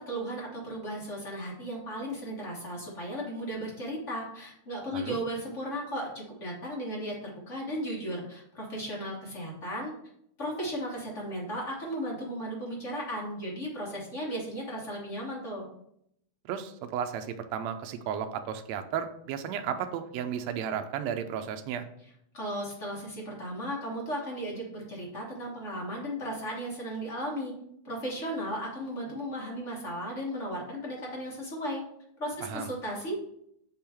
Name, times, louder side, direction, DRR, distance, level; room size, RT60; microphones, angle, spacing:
voice 1, 0.0-9.9 10.4-15.7 22.3-27.5 27.8-31.8 32.2-33.2, equal, 45° left, -3 dB, 1.0 m, -35 dB
voice 2, 16.4-21.9 32.4-32.7, right 8 dB, 80° right, 7 dB, 1.6 m, -34 dB
7.0 x 3.8 x 4.3 m, 0.73 s
omnidirectional pair, 3.5 m